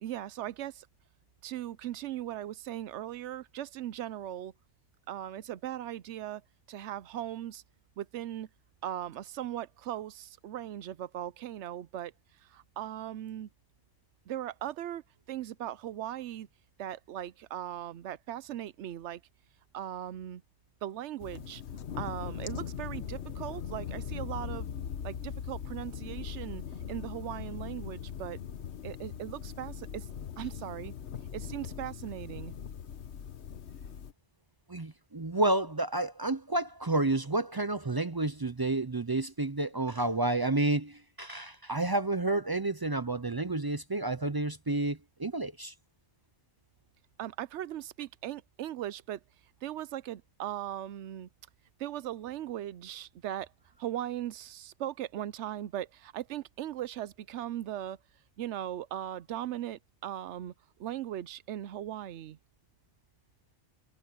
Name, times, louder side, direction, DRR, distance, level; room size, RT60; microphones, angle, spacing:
voice 1, 0.0-0.9 1.4-4.5 5.1-6.4 6.7-7.6 8.0-8.5 8.8-12.1 12.4-13.5 14.3-16.5 16.8-19.2 19.7-20.4 20.8-21.6 22.0-24.7 25.0-26.6 26.9-28.4 28.8-30.1 30.4-30.9 31.3-32.5 47.2-49.2 49.6-51.3 51.8-53.5 53.8-58.0 58.4-60.5 60.8-62.4, right 12 dB, 90° right, 0.9 m, -38 dB
sound 1, 21.2-34.1, left 8 dB, 75° left, 1.2 m, -40 dB
voice 2, 34.7-45.7, right 2 dB, 30° right, 0.4 m, -30 dB
omnidirectional pair, 1.2 m